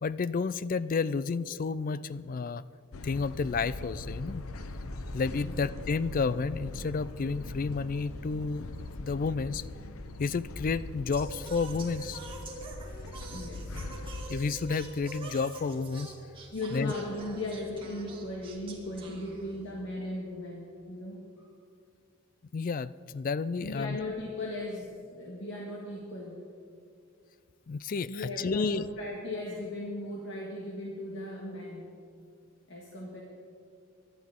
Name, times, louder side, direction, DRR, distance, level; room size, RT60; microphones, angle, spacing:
voice 1, 0.0-2.6 3.0-4.5 5.1-8.7 9.0-9.6 10.2-12.2 14.3-16.1 16.7-16.9 22.5-24.0 27.7-28.9, left 4 dB, 40° left, 17 dB, 0.3 m, -31 dB
sound 1, 2.9-14.4, left 2 dB, 85° left, 0.8 m, -41 dB
Singing, 11.1-19.8, right 3 dB, 25° right, 2.2 m, -45 dB
voice 2, 13.3-13.9 16.5-21.5 23.6-26.4 28.1-31.9 32.7-33.2, left 1 dB, 60° left, -2 dB, 1.7 m, -37 dB
23.0 x 12.0 x 3.7 m, 2.4 s
head